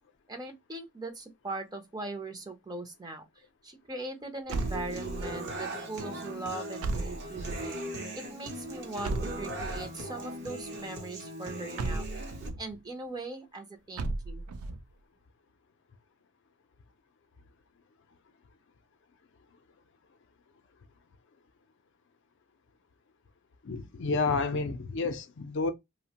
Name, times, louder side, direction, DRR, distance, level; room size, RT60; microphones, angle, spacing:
voice 1, 0.3-7.8 8.1-12.1 12.6-14.5, right 2 dB, 20° right, 0.5 m, -40 dB
Human voice / Acoustic guitar, 4.5-12.5, right 1 dB, 55° right, 0.7 m, -39 dB
sound 1, 4.5-5.5 6.8-7.8 9.0-10.0 11.8-12.6 14.0-14.8, right 2 dB, 85° right, 0.4 m, -35 dB
voice 2, 23.6-25.7, left 4 dB, 60° left, 0.4 m, -30 dB
2.8 x 2.1 x 2.8 m
head